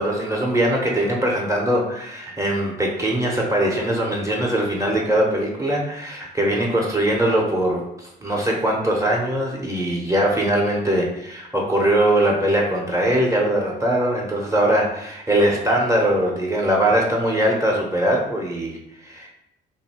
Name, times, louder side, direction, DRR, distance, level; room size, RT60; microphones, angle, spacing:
voice 1, 0.0-18.8 19.0-19.3, right 1 dB, 15° right, -1 dB, 0.8 m, -21 dB
2.6 x 2.6 x 4.2 m, 0.80 s
cardioid pair, 90°, 20 cm